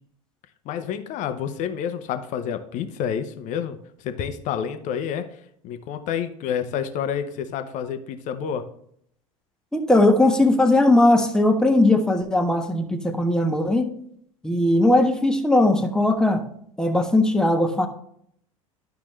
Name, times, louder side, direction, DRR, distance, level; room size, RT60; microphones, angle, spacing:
voice 1, 0.6-5.3 5.6-8.6, left 8 dB, 45° left, 9 dB, 1.0 m, -29 dB
voice 2, 9.7-13.9 14.4-16.4 16.8-17.9, left 1 dB, 5° left, 4 dB, 1.2 m, -19 dB
11.5 x 5.9 x 3.2 m, 0.68 s
figure-of-eight pair, 75°, 18 cm